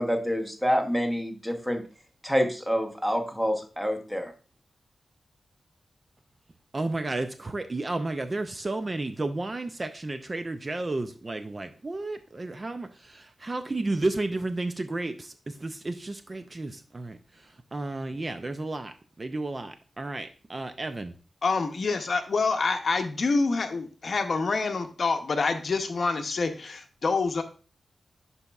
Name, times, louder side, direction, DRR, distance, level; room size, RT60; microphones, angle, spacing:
voice 1, 0.0-1.8 2.2-4.3, equal, 5° right, 4 dB, 1.0 m, -27 dB
voice 2, 6.7-21.1, right 2 dB, 30° right, 9 dB, 0.4 m, -32 dB
voice 3, 21.4-27.4, left 4 dB, 50° left, 6 dB, 0.7 m, -27 dB
11.0 x 4.1 x 2.3 m, 0.36 s
wide cardioid pair, 135°, 0 cm